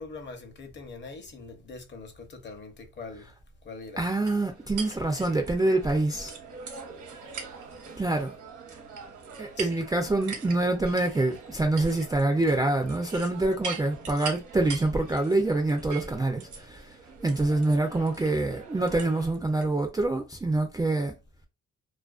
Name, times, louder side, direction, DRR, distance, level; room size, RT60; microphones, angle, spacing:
voice 1, 0.0-3.3 3.6-4.0 9.6-9.7, left 3 dB, 35° left, 0.7 m, -42 dB
voice 2, 4.0-6.4 8.0-8.3 9.4-16.9 17.2-21.1, right 2 dB, 15° right, 0.3 m, -26 dB
sound 1, 4.3-19.7, right 5 dB, 75° right, 0.9 m, -42 dB
2.4 x 2.2 x 2.3 m
cardioid pair, 90°, 30 cm